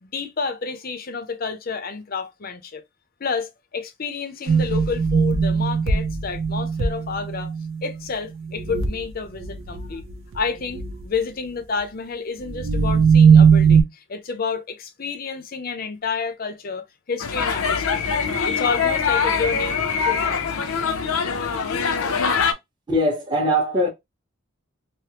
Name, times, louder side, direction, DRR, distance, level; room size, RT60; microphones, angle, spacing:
voice 1, 0.0-2.8 3.2-7.5 7.8-10.0 10.3-18.1 18.4-20.8, left 5 dB, 45° left, 0.6 m, -30 dB
sound 1, 4.5-7.9 8.4-9.1 9.4-10.4 10.7-11.0 12.5-13.8, right 6 dB, 70° right, 0.6 m, -18 dB
sound 2, 17.2-22.5, left 6 dB, 90° left, 0.5 m, -23 dB
voice 2, 22.9-23.9, equal, 20° right, 0.9 m, -21 dB
3.3 x 2.1 x 2.8 m
head